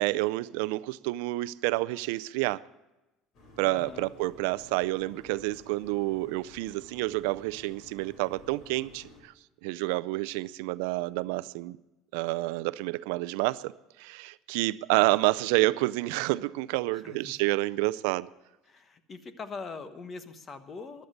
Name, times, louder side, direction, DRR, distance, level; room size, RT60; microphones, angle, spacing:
voice 1, 0.0-2.6 3.6-9.3 9.6-11.8 12.1-13.7 14.0-18.3, right 20 dB, 85° right, 0.4 m, -29 dB
sound 1, 3.3-9.2, left 1 dB, 45° left, 4.4 m, -53 dB
voice 2, 3.6-4.1 16.9-17.4 18.7-21.1, left 4 dB, 30° left, 1.1 m, -42 dB
15.0 x 11.5 x 6.6 m
cardioid pair, 130°, 0 cm